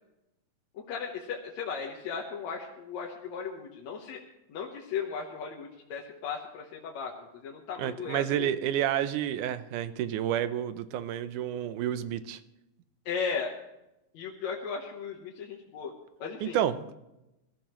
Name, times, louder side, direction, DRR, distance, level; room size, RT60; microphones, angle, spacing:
voice 1, 0.7-4.2 4.5-8.5 13.1-13.5 14.1-15.9 16.2-16.6, left 6 dB, 70° left, -1 dB, 2.4 m, -36 dB
voice 2, 7.8-12.4 16.4-16.9, right 10 dB, 85° right, 12 dB, 2.3 m, -30 dB
21.0 x 14.0 x 3.1 m, 0.93 s
omnidirectional pair, 3.5 m